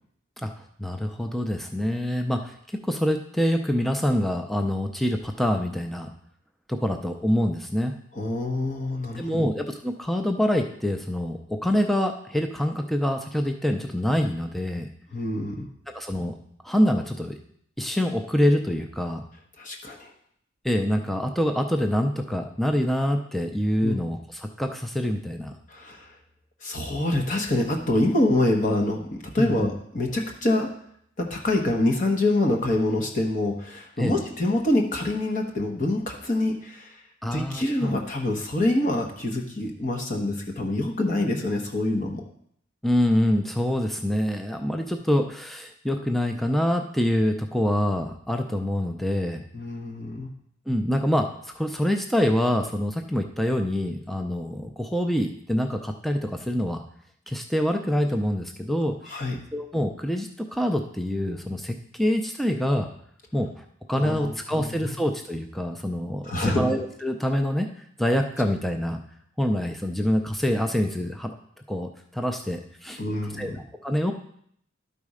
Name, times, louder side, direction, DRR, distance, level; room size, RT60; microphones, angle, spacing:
voice 1, 0.8-2.6 2.8-6.1 6.7-7.9 9.2-14.9 15.9-16.3 16.6-17.4 17.8-19.2 20.6-25.5 29.4-29.7 34.0-34.2 37.2-38.0 42.8-49.4 50.7-56.8 57.3-59.0 59.5-62.9 63.3-67.7 68.0-69.0 69.4-71.3 71.7-73.0 73.4-73.5 73.8-74.1, equal, ahead, 4 dB, 0.5 m, -25 dB
voice 2, 8.2-9.5 15.1-15.7 19.6-20.1 23.8-24.0 25.7-26.1 26.6-30.7 31.2-37.0 37.3-42.2 49.5-50.3 59.0-59.4 64.0-64.9 66.2-66.7 73.0-73.6, left 1 dB, 45° left, 1 dB, 1.1 m, -26 dB
12.0 x 4.1 x 4.9 m, 0.68 s
head